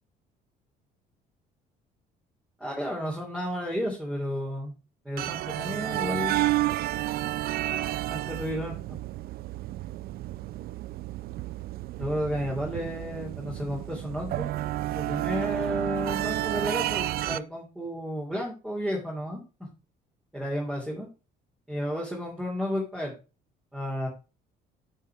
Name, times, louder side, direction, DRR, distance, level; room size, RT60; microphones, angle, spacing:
voice 1, 2.6-4.7 5.0-6.4 8.1-9.0 12.0-14.5 14.9-19.4 20.3-21.1 21.7-23.1 23.7-24.1, equal, 5° right, -4 dB, 3.0 m, -32 dB
sound 1, 5.2-17.4, right 15 dB, 65° right, 0.5 m, -31 dB
9.6 x 5.0 x 4.6 m, 0.32 s
cardioid pair, 110°, 17 cm